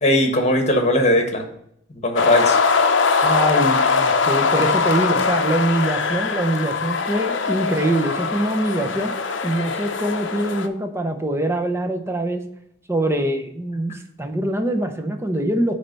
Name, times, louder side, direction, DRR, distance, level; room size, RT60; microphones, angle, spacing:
voice 1, 0.0-1.4 2.0-2.6 13.9-14.0, left 1 dB, 35° left, 4 dB, 1.3 m, -19 dB
sound 1, 2.2-10.7, left 4 dB, 65° left, 0.6 m, -21 dB
voice 2, 3.2-9.1 9.4-12.4 12.9-15.7, right 1 dB, 15° right, 5 dB, 0.8 m, -23 dB
9.5 x 3.4 x 5.3 m, 0.72 s
head